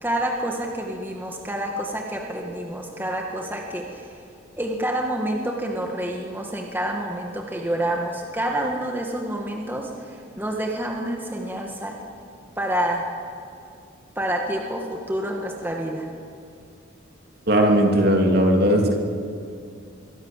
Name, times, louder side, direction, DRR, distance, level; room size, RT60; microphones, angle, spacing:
voice 1, 0.0-4.1 4.6-11.9 12.6-13.1 14.2-16.1, right 1 dB, 10° right, 0 dB, 2.0 m, -28 dB
voice 2, 17.5-19.0, equal, 50° right, 2 dB, 3.1 m, -18 dB
27.5 x 23.5 x 7.6 m, 2.5 s
head